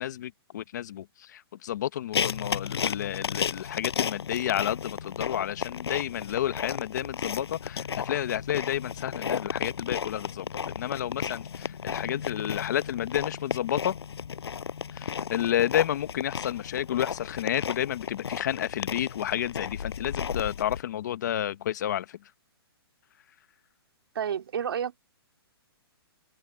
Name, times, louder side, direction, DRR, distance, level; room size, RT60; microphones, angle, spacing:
voice 1, 0.0-14.0 14.9-22.2, left 11 dB, 45° left, 1.4 m, -31 dB
sound 1, 2.1-20.8, left 7 dB, 75° left, 6.5 m, -34 dB
voice 2, 24.1-25.0, right 8 dB, 65° right, 2.9 m, -30 dB
open air
hypercardioid pair, 170°, 13 cm